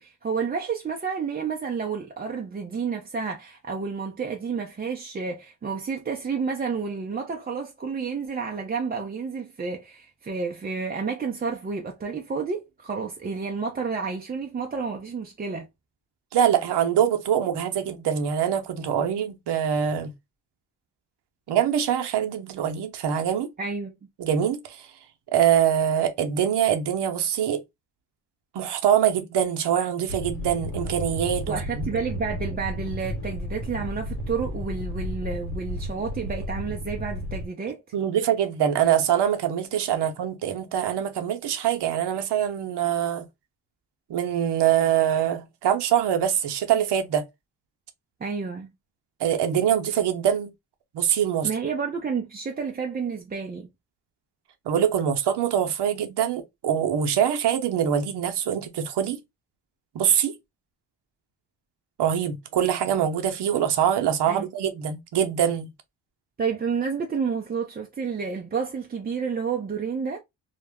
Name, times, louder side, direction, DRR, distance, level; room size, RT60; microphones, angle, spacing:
voice 1, 0.0-15.7 23.6-23.9 31.5-37.8 48.2-48.7 51.4-53.7 64.3-64.5 66.4-70.2, right 5 dB, 20° right, 0.4 m, -30 dB
voice 2, 16.3-20.1 21.5-23.5 24.2-24.9 25.3-27.6 28.5-31.9 37.9-43.3 44.1-47.2 49.2-50.5 50.9-51.5 54.7-59.2 59.9-60.3 62.0-65.7, right 9 dB, 55° right, 0.7 m, -24 dB
sound 1, 30.1-37.5, equal, 80° left, 1.0 m, -33 dB
2.2 x 2.0 x 3.3 m
cardioid pair, 70°, 48 cm